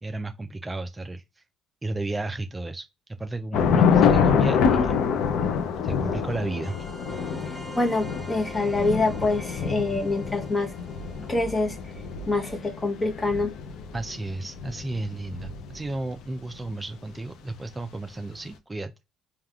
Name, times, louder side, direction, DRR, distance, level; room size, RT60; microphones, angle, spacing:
voice 1, 0.0-1.4 1.8-2.9 3.2-5.0 5.8-6.9 13.9-18.9, right 2 dB, 15° right, 0.3 m, -33 dB
Thunder / Rain, 3.5-16.0, left 6 dB, 70° left, 0.5 m, -26 dB
sound 1, 6.6-13.7, right 1 dB, ahead, 1.0 m, -45 dB
voice 2, 7.7-10.7 11.3-11.8 12.3-13.5, left 2 dB, 20° left, 0.9 m, -25 dB
3.4 x 2.3 x 2.3 m
supercardioid pair, 85°, 0 cm